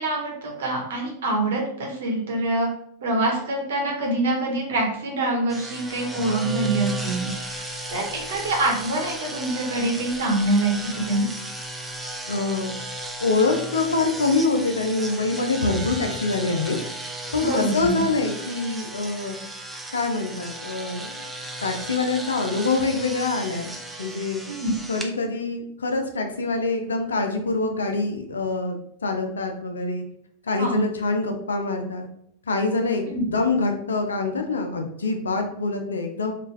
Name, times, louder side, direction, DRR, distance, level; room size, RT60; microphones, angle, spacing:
voice 1, 0.0-2.7 3.0-11.3 17.4-18.0 24.5-24.7 30.6-30.8 33.1-33.2, right 2 dB, 60° right, -1 dB, 1.0 m, -25 dB
sound 1, 5.5-25.1, right 2 dB, 5° right, 0.4 m, -35 dB
voice 2, 12.3-12.7 13.2-16.8 17.3-19.4 19.9-21.3 21.6-23.7 24.0-24.4 24.9-30.1 30.5-32.1 32.5-36.3, left 3 dB, 70° left, 4 dB, 0.5 m, -25 dB
3.2 x 2.4 x 3.2 m, 0.69 s
figure-of-eight pair, 90°, 0 cm